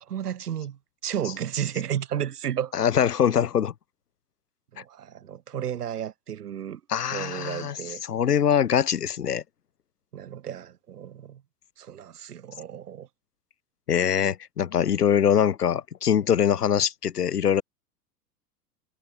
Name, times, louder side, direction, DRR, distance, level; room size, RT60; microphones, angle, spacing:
voice 1, 0.0-2.7 4.7-6.8 7.1-8.0 10.1-11.4 11.8-13.1, right 9 dB, 70° right, 2.1 m, -33 dB
voice 2, 2.8-3.7 6.9-7.8 8.1-9.4 13.9-17.6, left 8 dB, 75° left, 2.0 m, -23 dB
figure-of-eight pair, 90°, 47 cm